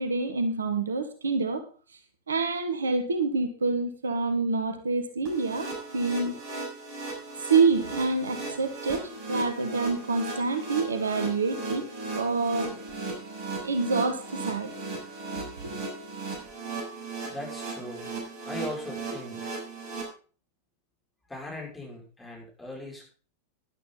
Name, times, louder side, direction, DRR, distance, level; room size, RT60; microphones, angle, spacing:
voice 1, 0.0-1.6 2.3-6.4 7.5-11.9 12.1-12.8 13.6-14.7 15.6-15.8, right 4 dB, 70° right, 9 dB, 1.6 m, -27 dB
sound 1, 5.3-20.0, right 3 dB, 45° right, 6.4 m, -37 dB
voice 2, 17.3-18.2 18.4-19.5 21.3-23.0, left 1 dB, 10° left, -2 dB, 6.0 m, -39 dB
13.0 x 11.5 x 3.9 m, 0.38 s
figure-of-eight pair, 90°, 0 cm